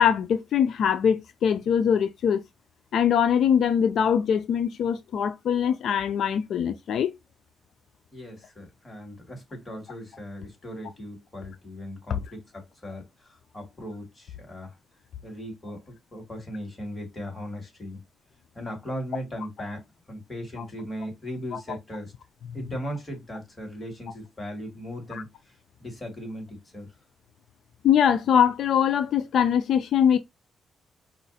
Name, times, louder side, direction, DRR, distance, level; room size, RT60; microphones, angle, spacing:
voice 1, 0.0-2.4 2.9-7.1 21.5-21.6 25.1-25.2 27.8-30.2, left 8 dB, 75° left, 0.3 m, -22 dB
voice 2, 8.1-14.8 15.2-18.0 18.5-19.8 20.1-22.1 22.5-26.9, equal, 20° left, 2.2 m, -38 dB
5.1 x 2.4 x 4.1 m
cardioid pair, 95°, 0 cm